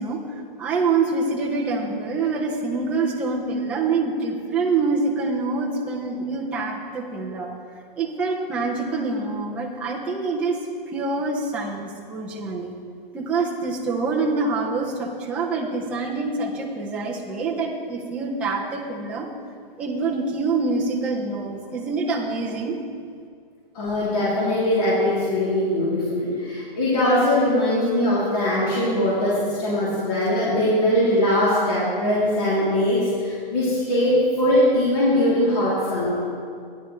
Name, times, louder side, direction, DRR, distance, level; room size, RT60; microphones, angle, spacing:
voice 1, 0.0-7.5 8.0-10.6 10.9-12.7 13.1-19.3 19.8-22.8, right 3 dB, 5° right, -3 dB, 0.4 m, -26 dB
voice 2, 23.7-36.2, left 1 dB, 40° left, -9 dB, 2.9 m, -21 dB
14.0 x 10.5 x 3.1 m, 2.2 s
hypercardioid pair, 155°, 29 cm